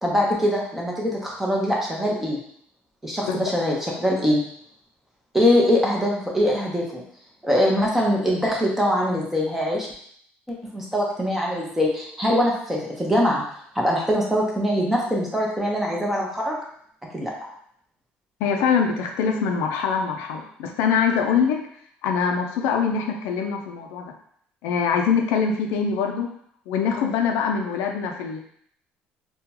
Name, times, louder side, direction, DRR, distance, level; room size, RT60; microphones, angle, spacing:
voice 1, 0.0-2.4 3.0-4.4 5.3-7.0 7.4-9.9 10.5-13.4 13.7-16.6 17.1-17.3, equal, 5° right, -3 dB, 0.9 m, -22 dB
voice 2, 18.4-21.6 22.0-24.1 24.6-26.3 26.7-28.4, left 6 dB, 85° left, 3 dB, 0.5 m, -23 dB
3.6 x 2.3 x 2.9 m, 0.65 s
cardioid pair, 110°, 4 cm